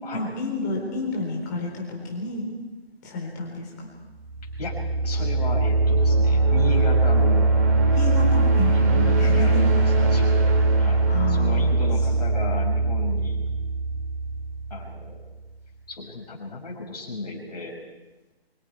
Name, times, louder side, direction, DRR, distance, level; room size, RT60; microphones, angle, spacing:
voice 1, 0.1-2.5 3.0-3.9 7.9-9.6 11.1-11.7, left 2 dB, 20° left, -1 dB, 4.0 m, -30 dB
sound 1, 4.2-15.0, right 3 dB, 15° right, 1.9 m, -21 dB
voice 2, 5.0-7.5 8.7-13.4 14.7-15.2 15.9-17.8, left 3 dB, 40° left, -1 dB, 5.6 m, -34 dB
28.0 x 24.0 x 4.6 m, 1.1 s
figure-of-eight pair, 155°, 31 cm